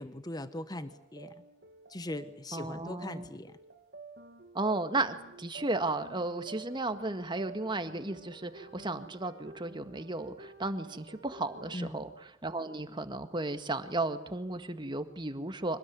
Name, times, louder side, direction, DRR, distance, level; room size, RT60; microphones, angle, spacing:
voice 1, 0.0-1.4 1.9-3.6 11.7-12.1, left 1 dB, 20° left, 11 dB, 1.2 m, -40 dB
sound 1, 0.8-11.8, right 3 dB, 55° right, 2.3 m, -51 dB
voice 2, 2.5-3.3 4.5-12.1 12.4-15.8, right 2 dB, 25° right, 9 dB, 1.8 m, -34 dB
25.5 x 19.5 x 9.7 m, 0.81 s
head